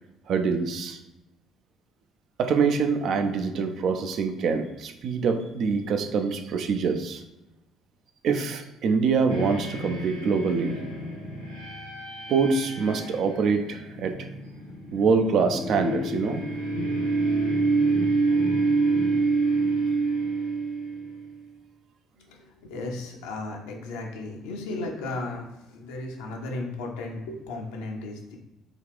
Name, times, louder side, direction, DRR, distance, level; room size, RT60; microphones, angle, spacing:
voice 1, 0.3-1.0 2.4-7.2 8.2-10.8 12.3-14.3 14.9-16.4, right 5 dB, 50° right, 7 dB, 0.4 m, -25 dB
sound 1, 9.3-21.3, right 3 dB, 90° right, 1.1 m, -27 dB
voice 2, 22.2-28.4, left 2 dB, 70° left, 1 dB, 0.6 m, -35 dB
3.8 x 2.3 x 3.5 m, 0.95 s
figure-of-eight pair, 50°, 0 cm